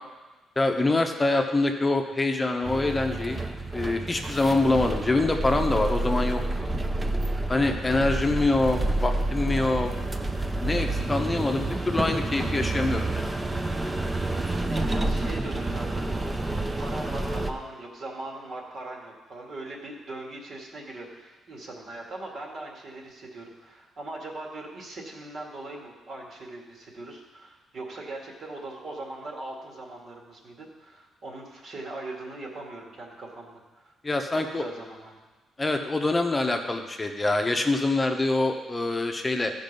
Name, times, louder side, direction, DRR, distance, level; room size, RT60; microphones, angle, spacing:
voice 1, 0.6-3.4 3.7-6.7 7.5-9.9 10.6-13.3 34.0-34.6 35.6-39.5, left 2 dB, 15° left, 4 dB, 0.9 m, -25 dB
sound 1, 2.6-17.5, right 2 dB, 15° right, 0.6 m, -29 dB
voice 2, 14.7-33.9 34.3-35.2, right 2 dB, 50° right, -1 dB, 2.2 m, -40 dB
14.0 x 5.4 x 5.4 m, 1.2 s
cardioid pair, 120°, 0 cm